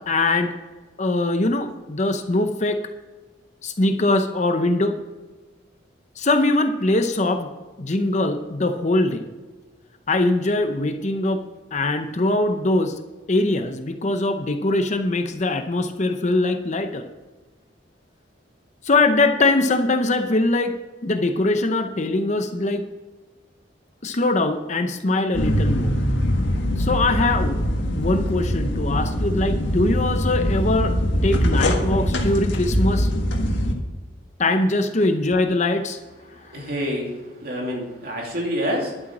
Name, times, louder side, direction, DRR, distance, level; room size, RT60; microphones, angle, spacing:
voice 1, 0.1-0.5 1.0-2.8 3.6-4.9 6.2-7.5 7.8-9.3 10.1-11.4 11.7-13.0 13.3-17.0 18.8-20.8 21.0-22.8 24.0-26.0 26.7-27.6 27.9-31.0 31.2-33.2 34.4-36.0, left 2 dB, 40° left, 6 dB, 0.7 m, -22 dB
sound 1, 25.3-33.7, equal, 85° left, 1.7 m, -22 dB
voice 2, 36.5-37.1 37.4-38.9, equal, 55° right, -1 dB, 2.7 m, -27 dB
11.5 x 8.1 x 6.0 m, 1.2 s
head